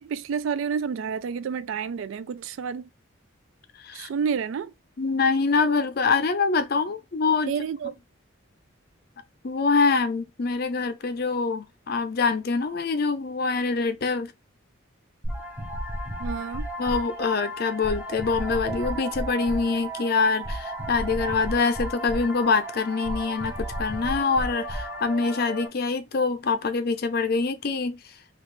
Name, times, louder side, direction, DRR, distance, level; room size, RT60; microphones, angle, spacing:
voice 1, 0.0-2.9 3.9-4.7 7.5-7.9 16.2-16.7, right 6 dB, 70° right, 0.3 m, -29 dB
voice 2, 5.0-7.5 9.4-14.3 16.8-28.0, left 4 dB, 50° left, 0.5 m, -25 dB
sound 1, 15.2-25.7, right 1 dB, 10° right, 0.7 m, -33 dB
3.3 x 2.4 x 3.2 m
head